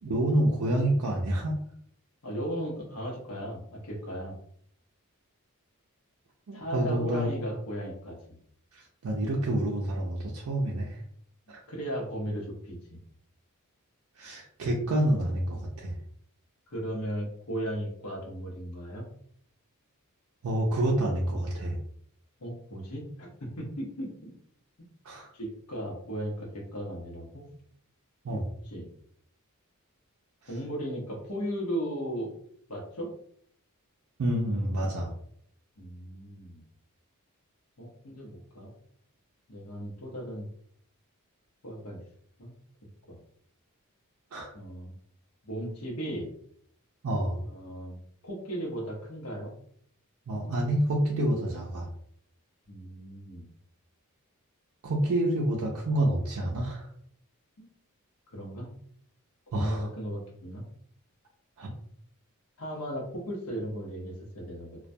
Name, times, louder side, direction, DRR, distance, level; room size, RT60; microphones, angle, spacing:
voice 1, 0.0-1.6 6.5-7.3 8.7-11.0 11.5-11.6 14.2-15.9 20.4-21.8 25.0-25.3 28.2-28.4 30.4-30.5 34.2-35.1 44.3-44.5 47.0-47.4 50.3-51.9 54.8-56.9 59.5-59.9 61.6-61.7, right 1 dB, 65° right, -2 dB, 0.4 m, -28 dB
voice 2, 2.2-4.4 6.5-8.4 11.7-13.0 16.7-19.1 22.4-24.3 25.3-27.4 28.3-28.9 30.5-32.3 32.7-33.1 35.8-36.6 37.8-38.7 39.5-40.5 41.6-42.0 42.4-42.5 43.1-43.2 44.5-44.9 45.4-46.3 47.4-48.0 48.2-49.5 52.7-53.5 57.6-57.7 58.3-58.7 59.5-60.6 62.6-64.8, equal, 75° left, -1 dB, 0.8 m, -36 dB
2.2 x 2.1 x 2.6 m, 0.65 s
head